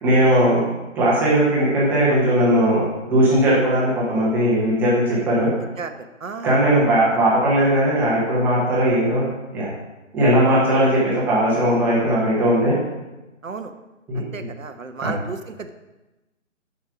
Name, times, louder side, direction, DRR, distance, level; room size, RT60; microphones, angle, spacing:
voice 1, 0.0-0.6 0.9-5.5 6.4-9.2 9.5-9.7 10.1-12.7 14.1-14.2 15.0-15.1, right 1 dB, 5° right, -7 dB, 1.2 m, -18 dB
voice 2, 5.8-6.6 13.4-13.7 14.1-15.7, right 4 dB, 80° right, 8 dB, 1.1 m, -33 dB
9.9 x 6.5 x 5.0 m, 1.1 s
figure-of-eight pair, 155°, 39 cm